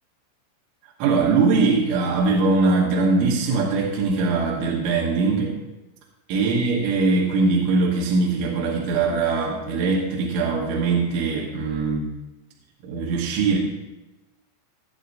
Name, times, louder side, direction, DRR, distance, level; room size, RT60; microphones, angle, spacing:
voice 1, 1.0-5.5 6.3-12.2 12.8-13.6, right 4 dB, 85° right, -3 dB, 3.7 m, -21 dB
21.0 x 7.8 x 2.7 m, 1.1 s
omnidirectional pair, 5.3 m